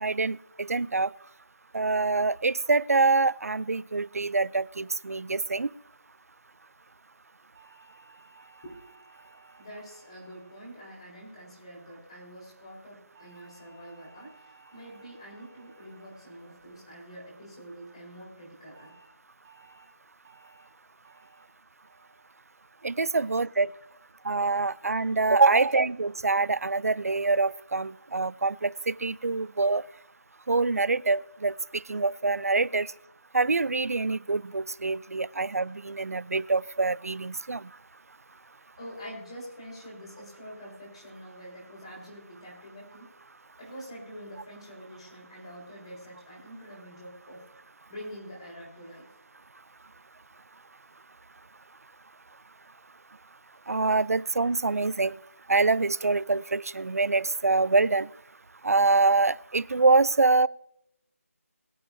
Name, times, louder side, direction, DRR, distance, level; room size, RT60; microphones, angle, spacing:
voice 1, 0.0-1.1 1.7-5.7 22.8-23.7 24.3-29.8 30.5-31.5 31.9-32.9 33.3-37.6 53.7-55.2 55.5-58.1 58.6-60.5, right 3 dB, 70° right, 20 dB, 0.5 m, -25 dB
sound 1, 7.5-12.0 13.1-17.6 18.7-19.0 19.4-19.8 20.2-20.6 21.0-21.4 21.8-22.2 22.6-23.0, right 4 dB, 10° right, 0.9 m, -59 dB
voice 2, 9.6-19.0 25.4-25.8 32.8-32.9 38.8-43.1 43.6-47.4 47.9-49.0, equal, 20° left, -3 dB, 4.0 m, -45 dB
21.5 x 8.7 x 2.7 m, 0.75 s
figure-of-eight pair, 175°, 8 cm